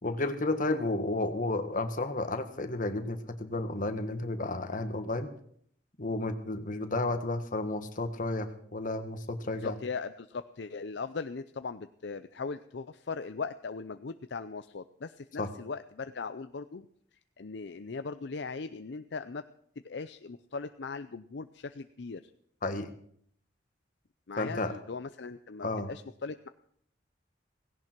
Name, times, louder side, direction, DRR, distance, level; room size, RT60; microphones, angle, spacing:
voice 1, 0.0-5.3 6.0-9.7 15.4-15.5 22.6-22.9 24.4-24.7 25.6-25.9, left 2 dB, 45° left, 8 dB, 1.5 m, -32 dB
voice 2, 9.6-16.9 17.4-19.4 19.8-22.2 24.3-26.5, left 4 dB, 65° left, 10 dB, 0.6 m, -39 dB
17.5 x 16.5 x 4.6 m, 0.65 s
head